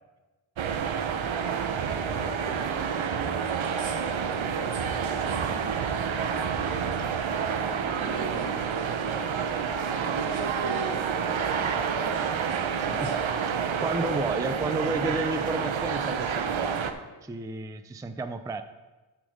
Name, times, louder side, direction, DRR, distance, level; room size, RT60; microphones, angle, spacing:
sound 1, 0.6-16.9, right 6 dB, 70° right, 0.8 m, -29 dB
voice 1, 1.9-5.8 6.2-7.5 7.8-9.5 9.8-13.1, right 3 dB, 85° right, 0 dB, 2.2 m, -41 dB
voice 2, 12.8-13.2 13.4-16.8 17.2-18.6, right 2 dB, 10° right, 9 dB, 0.3 m, -32 dB
12.0 x 5.2 x 5.1 m, 1.2 s
wide cardioid pair, 150°, 49 cm